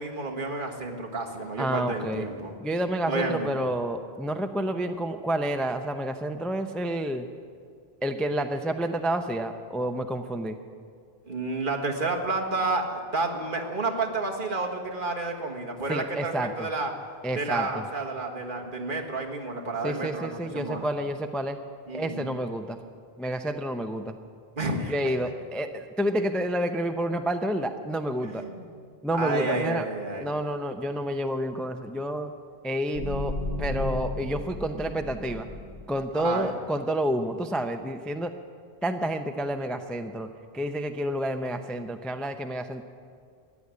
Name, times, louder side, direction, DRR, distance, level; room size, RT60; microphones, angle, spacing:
voice 1, 0.0-2.5 3.1-3.7 11.3-16.9 17.3-20.3 20.5-20.9 21.9-22.4 24.6-25.1 28.3-28.7 29.1-30.3 36.1-36.5, right 3 dB, 55° right, 1 dB, 1.7 m, -30 dB
voice 2, 1.6-2.3 2.6-7.3 8.0-10.6 15.9-16.7 17.2-17.8 19.8-21.6 21.9-22.8 23.2-24.2 24.9-28.4 29.0-29.8 30.2-32.3 32.6-33.3 33.6-35.5 35.9-38.3 38.8-40.3 40.5-42.8, right 1 dB, ahead, 7 dB, 0.5 m, -29 dB
sound 1, 32.9-36.1, left 1 dB, 85° left, 1.7 m, -34 dB
14.0 x 10.0 x 9.5 m, 2.2 s
omnidirectional pair, 1.0 m